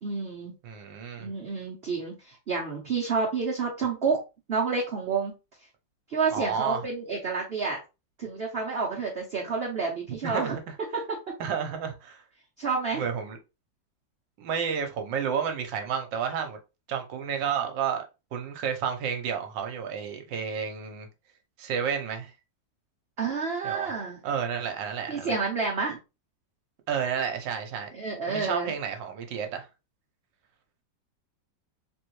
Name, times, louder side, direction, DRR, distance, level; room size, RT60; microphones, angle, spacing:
voice 1, 0.0-0.5 1.2-4.2 4.5-5.3 6.1-7.8 8.2-10.6 12.6-13.1 23.2-24.2 25.1-26.0 27.9-28.7, right 4 dB, 50° right, 0.7 m, -29 dB
voice 2, 0.6-1.3 6.3-6.8 10.2-10.7 11.4-12.2 12.9-13.4 14.4-16.6 16.9-18.0 18.3-21.1 21.6-22.3 23.6-23.9 24.2-25.4 26.9-27.9 28.3-29.7, right 7 dB, 80° right, 1.4 m, -31 dB
3.5 x 3.2 x 3.0 m
omnidirectional pair, 2.0 m